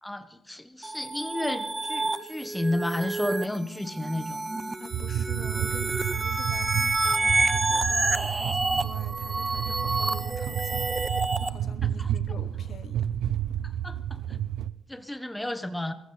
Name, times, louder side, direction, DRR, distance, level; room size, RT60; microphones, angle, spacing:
voice 1, 0.0-4.4 11.8-12.1 13.6-14.4 14.9-15.9, left 1 dB, 5° left, 1.3 m, -32 dB
sound 1, 0.8-11.5, right 3 dB, 20° right, 0.8 m, -29 dB
voice 2, 4.8-10.9 11.4-13.0, left 7 dB, 60° left, 1.0 m, -46 dB
sound 2, 4.9-14.7, right 10 dB, 80° right, 0.6 m, -31 dB
19.5 x 14.5 x 4.1 m
cardioid pair, 90°, 0 cm